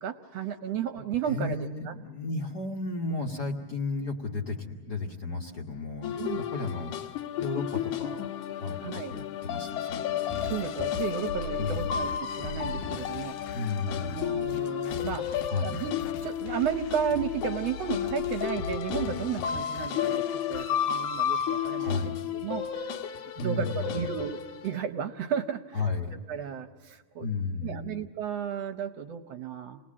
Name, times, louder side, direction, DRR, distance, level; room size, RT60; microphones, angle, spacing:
voice 1, 0.0-1.6 1.9-2.0 6.2-6.5 8.8-9.1 10.4-13.6 13.9-15.3 15.6-15.9 16.2-22.9 23.4-25.9 26.3-27.3 27.6-29.8, right 8 dB, 70° right, 8 dB, 1.7 m, -33 dB
voice 2, 1.3-8.3 8.6-10.3 11.6-12.0 13.5-15.1 15.5-15.8 21.8-22.4 23.4-24.2 25.7-26.2 27.2-28.0, left 3 dB, 45° left, 0 dB, 1.5 m, -34 dB
sound 1, 6.0-24.8, left 10 dB, 90° left, 2.5 m, -32 dB
sound 2, 10.3-20.7, left 4 dB, 70° left, 2.0 m, -40 dB
28.0 x 19.5 x 7.4 m, 1.4 s
omnidirectional pair, 3.4 m